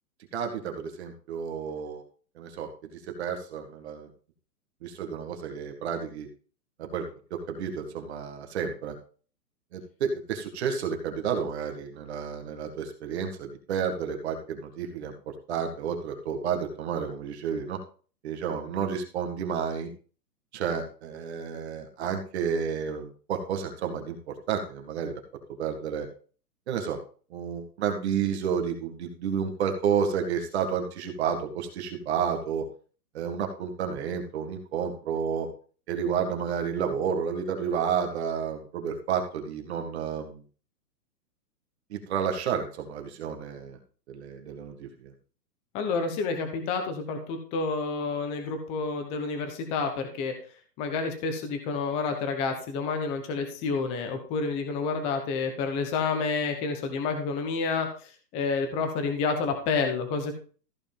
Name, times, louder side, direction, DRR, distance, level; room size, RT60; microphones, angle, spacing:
voice 1, 0.3-2.0 2.4-2.7 3.2-4.1 4.8-6.3 6.8-9.0 9.7-15.1 15.5-17.8 18.2-19.9 20.5-25.2 25.6-26.1 26.7-27.0 27.3-32.7 33.1-35.5 35.9-40.4 41.9-43.8 44.1-44.9, right 7 dB, 40° right, 4 dB, 1.9 m, -31 dB
voice 2, 45.7-50.3 50.8-60.4, left 4 dB, 10° left, 5 dB, 0.9 m, -29 dB
14.5 x 5.1 x 5.3 m, 0.39 s
hypercardioid pair, 165°, 49 cm